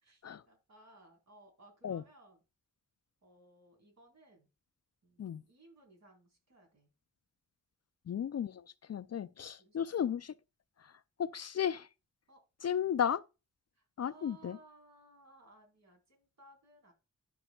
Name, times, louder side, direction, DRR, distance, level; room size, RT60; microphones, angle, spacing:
voice 1, 0.0-2.4 3.2-4.5 5.0-6.9 9.6-10.2 12.3-12.4 13.7-16.9, right 2 dB, 55° right, 4.1 m, -61 dB
voice 2, 8.1-8.6 8.9-10.3 11.2-11.9 12.6-13.2 14.0-14.6, left 8 dB, 50° left, 0.4 m, -34 dB
13.0 x 5.4 x 2.3 m
wide cardioid pair, 115°, 33 cm